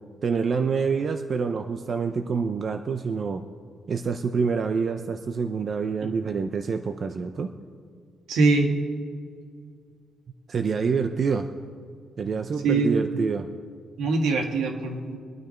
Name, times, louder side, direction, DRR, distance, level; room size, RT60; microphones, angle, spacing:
voice 1, 0.2-3.4 3.9-7.5 10.5-11.5 12.2-13.5, right 5 dB, 45° right, 7 dB, 0.6 m, -26 dB
voice 2, 8.3-8.7 12.6-12.9 14.0-15.2, right 3 dB, 80° right, 3 dB, 1.6 m, -22 dB
22.5 x 9.4 x 4.5 m, 2.1 s
cardioid pair, 90°, 0 cm